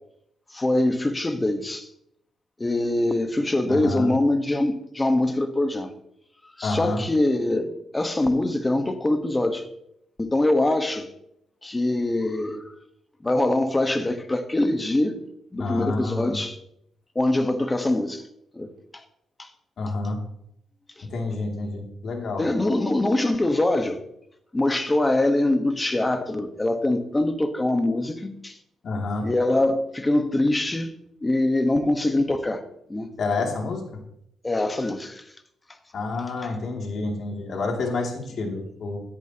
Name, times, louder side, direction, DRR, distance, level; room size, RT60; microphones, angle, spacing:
voice 1, 0.5-1.9 2.6-5.9 6.6-9.7 10.2-11.1 11.6-12.7 13.2-15.2 15.5-16.6 17.1-18.2 18.5-19.0 19.4-19.5 21.0-21.1 22.4-24.0 24.5-28.6 29.2-30.9 31.2-33.1 34.4-35.2, left 1 dB, 15° left, 1.3 m, -23 dB
voice 2, 3.7-4.1 6.6-7.0 15.6-16.4 19.8-20.2 21.1-22.4 28.8-29.3 33.2-33.8 35.9-39.0, left 3 dB, 55° left, 2.7 m, -28 dB
16.5 x 10.5 x 3.0 m
cardioid pair, 90°, 0 cm